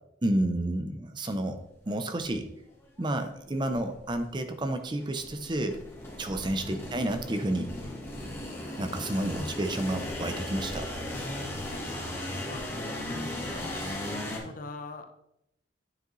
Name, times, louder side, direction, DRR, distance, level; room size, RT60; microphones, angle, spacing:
voice 1, 0.2-1.6 1.9-2.5 3.0-5.8 6.2-7.7 8.8-10.9, right 1 dB, 25° right, 7 dB, 0.5 m, -30 dB
sound 1, 2.2-2.3 3.0-3.1 3.7-4.3 5.0-14.4, left 1 dB, 15° left, 1.3 m, -36 dB
voice 2, 12.1-13.7 14.4-15.1, left 3 dB, 50° left, 7 dB, 0.6 m, -43 dB
9.1 x 4.9 x 3.1 m, 0.80 s
head